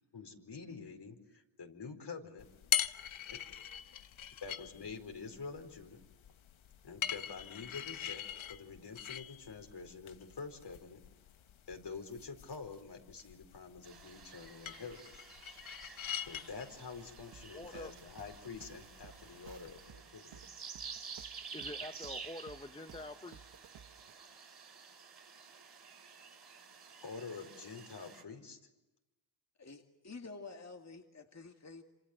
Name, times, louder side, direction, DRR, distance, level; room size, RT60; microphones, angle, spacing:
voice 1, 0.1-2.4 3.3-3.4 4.4-6.0 6.8-8.2 8.5-11.0 11.7-15.2 16.3-20.4 27.0-28.6, left 4 dB, 60° left, 5 dB, 4.7 m, -47 dB
sound 1, 2.4-19.9, left 9 dB, 85° left, 1.1 m, -43 dB
sound 2, 13.8-28.2, right 5 dB, 60° right, 5.4 m, -51 dB
sound 3, 17.3-24.2, right 8 dB, 80° right, 1.3 m, -57 dB
voice 2, 17.5-17.9 21.5-23.5, left 2 dB, 10° left, 8 dB, 1.0 m, -46 dB
voice 3, 29.6-31.8, left 3 dB, 35° left, 4 dB, 2.3 m, -49 dB
27.5 x 27.0 x 8.0 m, 1.0 s
cardioid pair, 70°, 46 cm